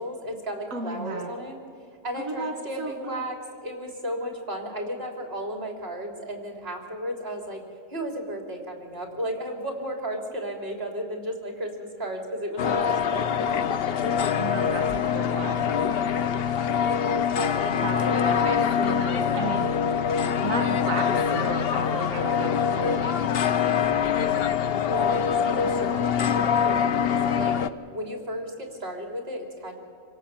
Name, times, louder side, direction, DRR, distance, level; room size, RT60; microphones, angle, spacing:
voice 1, 0.0-1.6 2.0-3.4 3.6-7.6 7.9-13.3 13.8-13.9 17.1-18.4 18.8-19.5 24.8-27.5 27.9-29.7, equal, 50° right, 2 dB, 3.6 m, -34 dB
voice 2, 0.7-1.3 2.2-3.2 14.4-15.7 17.8-19.7 20.4-24.5, right 3 dB, 85° right, 3 dB, 2.0 m, -34 dB
sound 1, 12.6-27.7, left 7 dB, 55° left, 0.8 m, -24 dB
25.5 x 17.5 x 7.3 m, 2.4 s
omnidirectional pair, 1.4 m